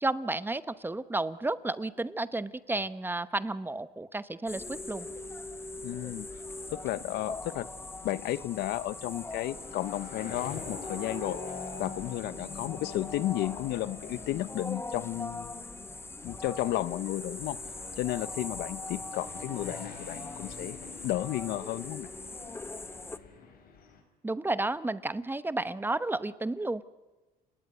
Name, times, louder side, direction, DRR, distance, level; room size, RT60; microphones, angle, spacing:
voice 1, 0.0-5.1 24.2-26.8, right 2 dB, 10° right, 15 dB, 1.0 m, -32 dB
sound 1, 4.5-23.2, left 2 dB, 15° left, 1.2 m, -41 dB
voice 2, 5.8-6.3 6.7-7.7 8.0-11.4 11.8-15.6 16.2-17.6 18.0-20.8 21.0-22.1, left 14 dB, 80° left, 16 dB, 1.0 m, -33 dB
sound 2, 5.9-24.0, left 4 dB, 60° left, 5.6 m, -46 dB
30.0 x 18.5 x 9.4 m, 1.2 s
cardioid pair, 110°, 17 cm